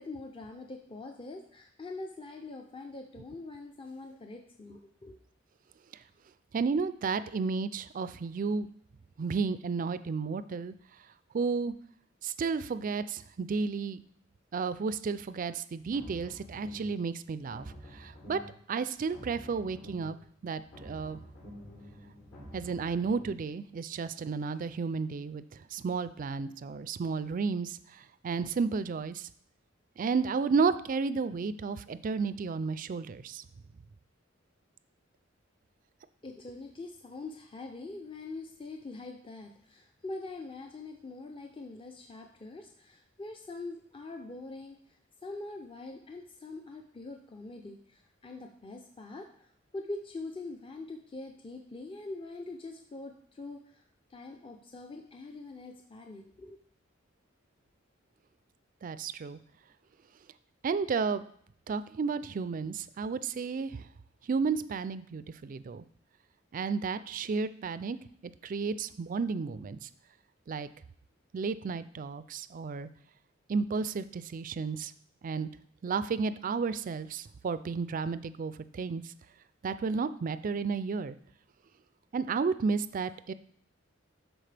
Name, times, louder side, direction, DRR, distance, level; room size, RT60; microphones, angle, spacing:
voice 1, 0.0-5.2 36.2-44.7 45.2-49.3 49.7-53.8 54.1-56.6, left 2 dB, 25° left, 3 dB, 0.6 m, -43 dB
voice 2, 6.5-8.7 9.2-10.7 11.3-11.7 12.2-14.0 14.5-17.6 17.9-18.4 18.7-20.2 20.4-21.2 22.5-25.4 25.7-29.3 30.0-33.4 58.8-59.4 60.6-61.2 61.7-63.8 64.3-65.8 66.5-68.0 68.4-69.9 70.5-70.7 71.3-72.9 73.5-74.9 75.2-75.5 75.8-79.1 79.6-81.2 82.1-83.3, right 5 dB, 45° right, 14 dB, 0.4 m, -32 dB
sound 1, 15.8-17.0 17.4-18.6 19.0-20.2 20.6-23.4, equal, 80° left, 3.8 m, -48 dB
12.0 x 4.4 x 3.4 m, 0.63 s
head